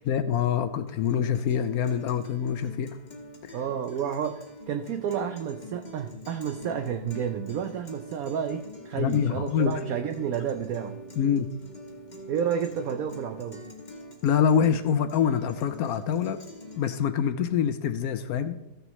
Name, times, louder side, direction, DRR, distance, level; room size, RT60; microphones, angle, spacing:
voice 1, 0.1-3.0 3.4-3.6 9.0-9.8 11.2-11.5 14.2-16.4 16.8-18.7, left 8 dB, 70° left, 11 dB, 0.9 m, -25 dB
Guitar, 0.9-16.9, left 1 dB, 30° left, 1.3 m, -45 dB
voice 2, 3.5-11.0 12.3-13.6, right 8 dB, 70° right, 7 dB, 0.9 m, -31 dB
14.5 x 6.8 x 3.1 m, 0.89 s
omnidirectional pair, 1.9 m